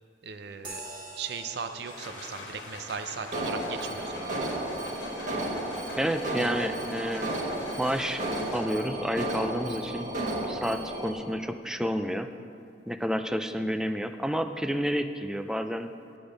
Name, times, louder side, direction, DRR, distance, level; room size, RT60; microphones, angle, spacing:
voice 1, 0.2-0.8 1.1-4.6, right 5 dB, 65° right, 8 dB, 0.6 m, -38 dB
sound 1, 0.6-8.5, right 2 dB, 25° right, 1.5 m, -49 dB
sound 2, 1.6-9.0, left 2 dB, 75° left, 1.5 m, -44 dB
Alarm, 3.3-11.1, right 1 dB, 45° right, 1.5 m, -33 dB
voice 2, 6.0-7.3 7.8-8.2 8.5-10.1 10.5-12.3 12.9-15.9, equal, 5° right, 8 dB, 0.3 m, -30 dB
9.9 x 7.0 x 5.1 m, 2.4 s
head